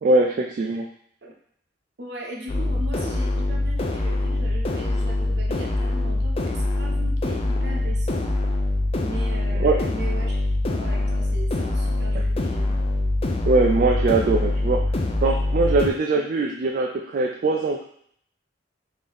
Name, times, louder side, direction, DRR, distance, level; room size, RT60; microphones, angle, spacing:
voice 1, 0.0-0.9 9.5-9.8 13.5-14.9 15.2-17.8, right 3 dB, 50° right, 0 dB, 0.3 m, -21 dB
voice 2, 2.0-8.3 9.0-10.4 10.7-12.8 16.1-16.3, right 1 dB, 65° right, -1 dB, 0.8 m, -38 dB
sound 1, 2.5-15.9, left 2 dB, 30° left, 0.4 m, -24 dB
3.5 x 2.7 x 3.4 m, 0.65 s
head